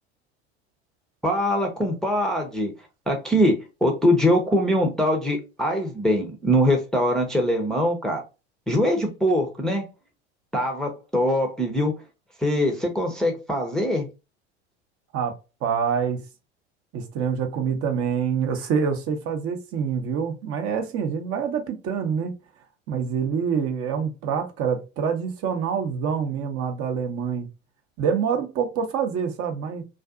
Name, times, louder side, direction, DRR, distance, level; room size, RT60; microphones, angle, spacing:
voice 1, 1.2-2.7 3.1-8.2 8.7-9.8 10.5-11.9 12.4-14.0, equal, ahead, 0.6 m, -22 dB
voice 2, 15.1-16.2 16.9-22.3 22.9-27.5 28.0-29.8, right 6 dB, 45° right, 0.7 m, -26 dB
2.5 x 2.4 x 2.4 m
hypercardioid pair, 80°, 34 cm